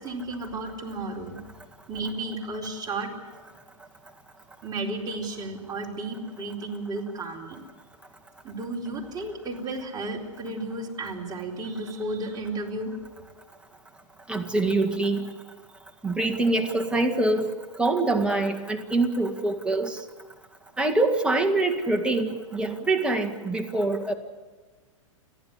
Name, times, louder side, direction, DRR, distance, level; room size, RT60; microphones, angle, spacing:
voice 1, 0.0-1.4 1.9-3.1 4.6-7.6 8.4-12.9, right 2 dB, 25° right, -1 dB, 4.3 m, -33 dB
voice 2, 14.3-15.3 16.0-20.0 20.8-24.1, right 2 dB, 5° right, 3 dB, 2.0 m, -25 dB
29.5 x 11.5 x 9.7 m, 1.4 s
hypercardioid pair, 115°, 17 cm